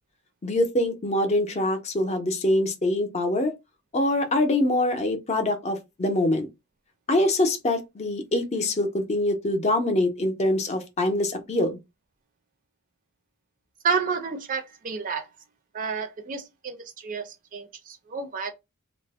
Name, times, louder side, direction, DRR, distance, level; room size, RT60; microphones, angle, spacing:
voice 1, 0.4-3.5 3.9-6.5 7.1-11.8, left 1 dB, 30° left, 0.5 m, -24 dB
voice 2, 13.8-15.3 15.7-18.5, right 5 dB, 40° right, 0.4 m, -30 dB
2.4 x 2.0 x 3.4 m
head